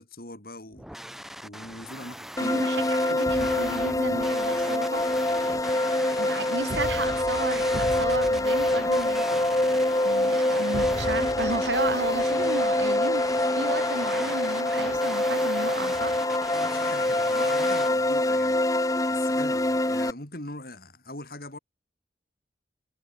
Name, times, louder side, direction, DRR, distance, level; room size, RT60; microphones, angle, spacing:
voice 1, 0.0-2.8 16.6-21.6, left 2 dB, 55° left, 5.5 m, -42 dB
sound 1, 0.7-17.9, equal, ahead, 3.4 m, -40 dB
sound 2, 2.4-20.1, left 1 dB, 20° left, 1.3 m, -25 dB
voice 2, 2.4-5.1 6.2-9.5 10.0-16.2, right 2 dB, 80° right, 6.0 m, -33 dB
sound 3, 3.3-4.6 6.7-9.7 10.7-12.9, equal, 50° right, 3.0 m, -39 dB
head